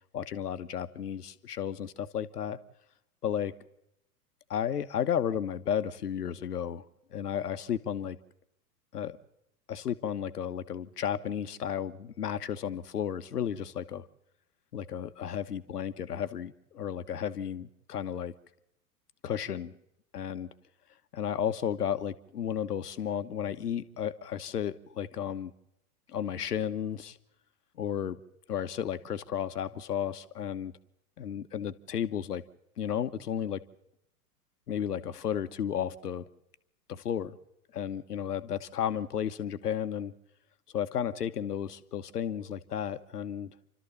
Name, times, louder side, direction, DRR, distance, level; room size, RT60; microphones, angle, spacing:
voice 1, 0.1-2.6 3.2-3.5 4.5-6.9 7.1-8.2 8.9-9.2 9.7-14.1 14.7-18.3 19.2-19.7 20.1-20.5 21.1-25.5 26.1-27.2 27.7-28.2 28.5-30.7 31.2-32.4 32.8-33.6 34.7-36.3 36.9-37.4 37.7-40.1 40.7-43.5, left 9 dB, 80° left, 11 dB, 1.4 m, -33 dB
29.5 x 13.0 x 7.0 m, 0.82 s
hypercardioid pair, 110°, 46 cm